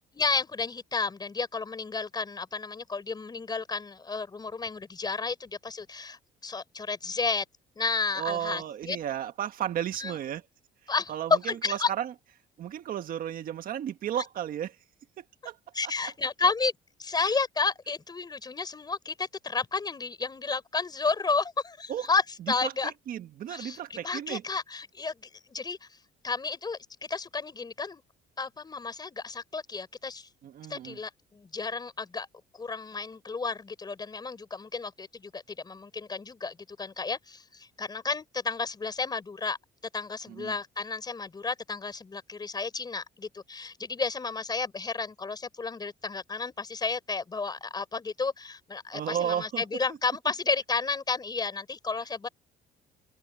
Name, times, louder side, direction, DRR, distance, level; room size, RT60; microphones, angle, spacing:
voice 1, 0.1-7.4 7.7-9.0 10.0-10.2 10.9-11.9 15.7-16.7 17.0-22.9 23.5-25.1 25.5-25.8 26.2-26.8 27.1-28.0 28.4-30.3 30.7-32.3 32.5-39.6 39.9-52.3, left 4 dB, 25° left, 5.0 m, -32 dB
voice 2, 8.2-10.4 11.1-12.1 12.6-14.7 15.2-15.6 17.2-17.3 21.9-22.1 22.6-24.4 30.4-31.0 40.3-40.6 48.9-49.6, right 10 dB, 55° right, 1.5 m, -33 dB
cardioid pair, 110°, 17 cm